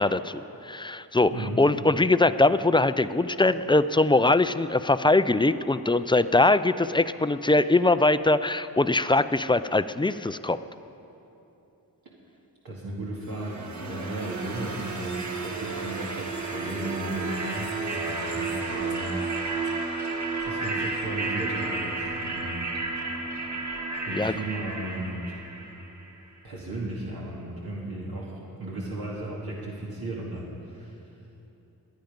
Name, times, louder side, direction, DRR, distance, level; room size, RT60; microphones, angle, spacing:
voice 1, 0.0-1.3 1.6-10.6 24.1-24.3, left 2 dB, 15° left, 13 dB, 0.4 m, -22 dB
voice 2, 1.3-1.6 12.6-19.2 19.5-19.7 20.4-22.8 24.1-25.3 26.4-30.5 30.7-30.9, right 2 dB, 75° right, -5 dB, 2.3 m, -35 dB
sound 1, 13.3-26.2, right 3 dB, 50° right, 1.7 m, -32 dB
22.0 x 9.3 x 5.3 m, 2.9 s
wide cardioid pair, 65°, 37 cm